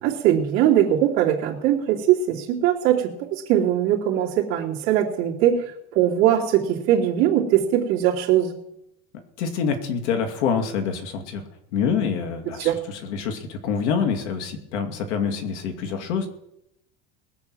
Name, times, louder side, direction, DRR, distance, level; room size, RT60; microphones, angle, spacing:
voice 1, 0.0-8.5 12.6-12.8, right 11 dB, 40° right, -6 dB, 2.9 m, -21 dB
voice 2, 9.4-11.4 11.7-16.3, left 6 dB, 90° left, 6 dB, 2.6 m, -26 dB
21.0 x 7.1 x 6.2 m, 0.81 s
cardioid pair, 175°, 34 cm